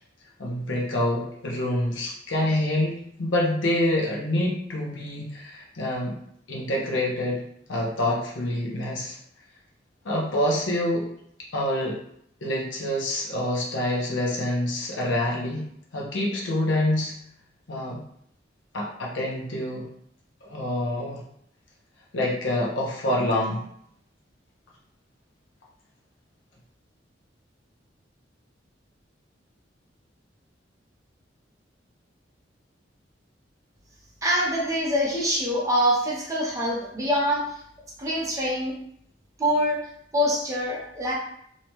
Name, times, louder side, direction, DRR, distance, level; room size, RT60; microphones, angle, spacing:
voice 1, 0.4-6.2 6.5-7.4 7.7-9.2 10.0-11.1 11.5-12.0 12.4-17.1 17.7-18.0 18.7-19.9 20.4-21.2 22.1-23.6, left 1 dB, 90° left, -2 dB, 0.7 m, -26 dB
voice 2, 34.2-37.4 38.0-38.7 39.4-39.8 40.1-41.1, equal, 20° right, -3 dB, 0.6 m, -24 dB
2.7 x 2.2 x 3.0 m, 0.70 s
head